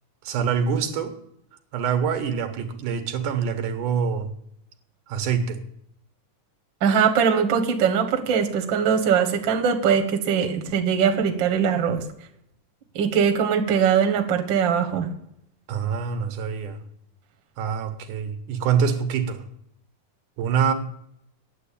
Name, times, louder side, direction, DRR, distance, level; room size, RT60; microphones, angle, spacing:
voice 1, 0.2-1.1 1.7-4.3 5.1-5.6 15.7-16.8 17.6-19.4 20.4-20.7, right 7 dB, 80° right, 7 dB, 2.7 m, -25 dB
voice 2, 6.8-12.0 12.9-15.1, right 7 dB, 50° right, 4 dB, 1.6 m, -21 dB
9.7 x 7.9 x 8.5 m, 0.75 s
omnidirectional pair, 3.7 m